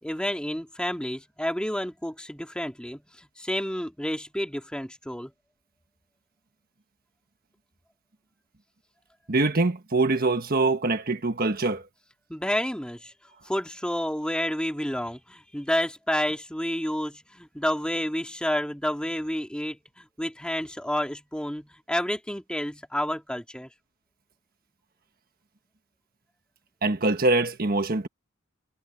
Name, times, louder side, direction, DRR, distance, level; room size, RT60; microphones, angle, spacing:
voice 1, 0.0-3.0 3.4-5.3 12.3-13.1 13.4-23.7, equal, 5° left, 2.7 m, -30 dB
voice 2, 9.3-11.8 26.8-28.1, right 2 dB, 50° right, 1.4 m, -24 dB
head